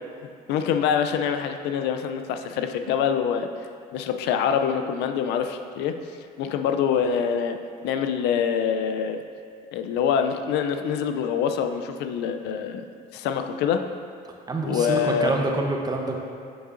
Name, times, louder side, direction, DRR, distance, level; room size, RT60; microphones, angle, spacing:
voice 1, 0.5-3.5 3.9-5.9 6.4-7.6 7.8-9.2 9.7-12.8 13.1-13.8 14.6-15.3, left 7 dB, 85° left, 7 dB, 0.4 m, -25 dB
voice 2, 14.5-16.2, right 2 dB, 25° right, 1 dB, 0.8 m, -26 dB
7.7 x 6.3 x 2.5 m, 2.2 s
cardioid pair, 110°, 17 cm